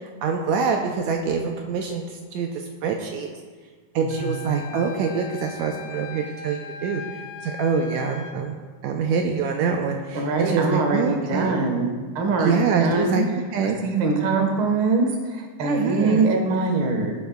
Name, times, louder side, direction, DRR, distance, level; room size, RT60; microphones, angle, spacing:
voice 1, 0.2-2.5 2.8-3.3 4.0-7.0 7.4-11.5 12.4-13.2 13.5-13.8 15.6-16.2, right 6 dB, 80° right, 2 dB, 1.9 m, -25 dB
voice 2, 4.0-4.5 10.1-13.2 13.8-17.1, right 3 dB, 45° right, 2 dB, 1.7 m, -23 dB
Wind instrument woodwind instrument, 4.1-8.4, left 4 dB, 70° left, 1.7 m, -39 dB
17.5 x 7.8 x 2.3 m, 1.5 s
omnidirectional pair, 3.4 m